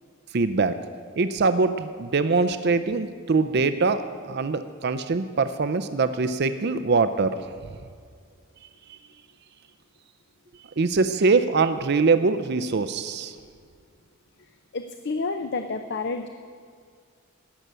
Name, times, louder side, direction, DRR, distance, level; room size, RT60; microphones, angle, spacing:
voice 1, 0.3-0.8 1.2-7.5 10.8-13.4, right 4 dB, 50° right, 10 dB, 0.5 m, -23 dB
voice 2, 14.7-16.3, left 3 dB, 50° left, 8 dB, 0.6 m, -29 dB
17.5 x 6.8 x 8.9 m, 2.1 s
head